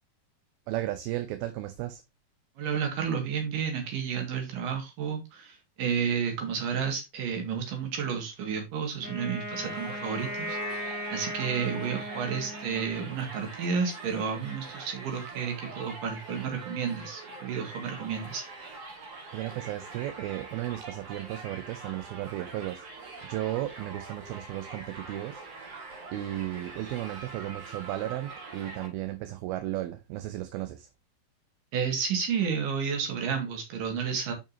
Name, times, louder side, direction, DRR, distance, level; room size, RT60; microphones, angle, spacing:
voice 1, 0.7-2.0 19.3-25.4 26.1-30.9, right 14 dB, 80° right, 2.5 m, -34 dB
voice 2, 2.6-18.4 31.7-34.3, right 6 dB, 65° right, 3.4 m, -31 dB
Wind instrument woodwind instrument, 9.0-13.2, equal, 5° right, 1.6 m, -37 dB
Crowd, 9.6-28.9, right 3 dB, 50° right, 2.6 m, -44 dB
9.0 x 5.3 x 2.8 m
omnidirectional pair, 4.4 m